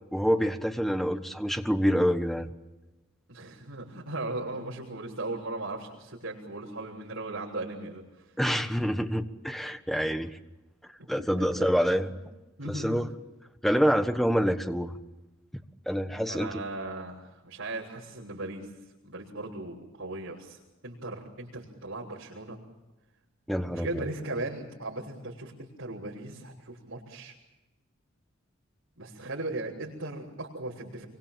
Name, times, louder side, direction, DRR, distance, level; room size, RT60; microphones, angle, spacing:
voice 1, 0.1-2.5 8.4-10.4 11.1-12.1 12.6-13.1 13.6-14.9 15.9-16.6 23.5-24.1, equal, ahead, 8 dB, 1.3 m, -26 dB
voice 2, 3.3-8.0 11.4-11.7 12.0-12.2 12.6-13.0 16.3-18.7 19.0-22.6 23.7-27.3 29.0-31.0, right 2 dB, 70° right, -7 dB, 6.4 m, -37 dB
26.5 x 24.5 x 7.5 m, 1.0 s
head